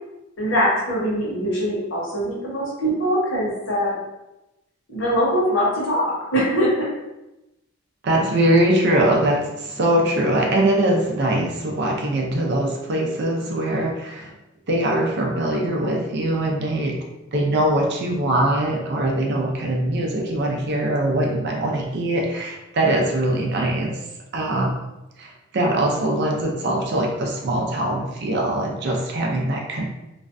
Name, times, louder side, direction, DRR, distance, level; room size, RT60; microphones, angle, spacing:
voice 1, 0.4-4.0 4.9-6.9, equal, 65° left, -5 dB, 0.9 m, -22 dB
voice 2, 8.0-14.3 14.7-17.0 17.3-24.0 24.3-24.7 25.2-29.9, right 1 dB, 55° right, 0 dB, 0.5 m, -22 dB
2.4 x 2.2 x 2.4 m, 0.97 s
head